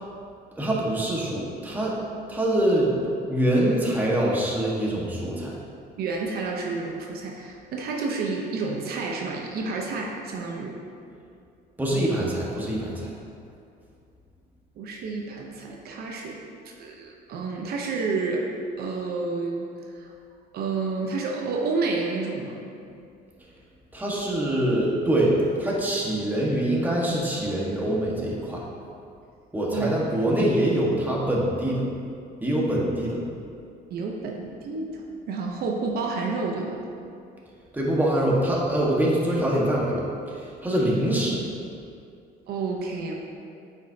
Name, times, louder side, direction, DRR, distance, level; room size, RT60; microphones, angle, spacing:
voice 1, 0.6-2.0 2.3-2.9 3.3-5.5 11.8-13.1 23.9-28.6 29.5-31.9 32.4-33.2 37.7-40.0 40.3-41.4, right 1 dB, 10° right, -5 dB, 1.4 m, -24 dB
voice 2, 6.0-10.8 14.8-18.5 18.8-19.7 20.0-20.1 20.5-22.6 29.7-29.9 30.3-30.5 33.9-36.8 42.5-43.1, right 4 dB, 65° right, 0 dB, 0.8 m, -30 dB
8.8 x 5.3 x 2.8 m, 2.4 s
cardioid pair, 110°, 17 cm